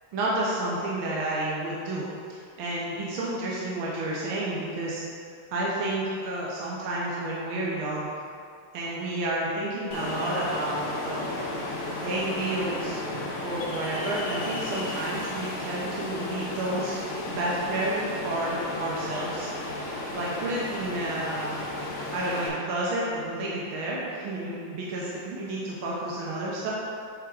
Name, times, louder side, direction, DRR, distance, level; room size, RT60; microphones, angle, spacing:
voice 1, 0.1-2.0 2.3-5.0 5.5-8.1 8.7-11.5 12.0-13.0 13.4-17.0 17.3-19.5 20.1-21.7 22.1-26.7, right 1 dB, 75° right, -5 dB, 1.7 m, -30 dB
Ocean, 9.9-22.5, left 2 dB, 80° left, 2.0 m, -34 dB
7.3 x 3.5 x 4.7 m, 2.3 s
omnidirectional pair, 2.3 m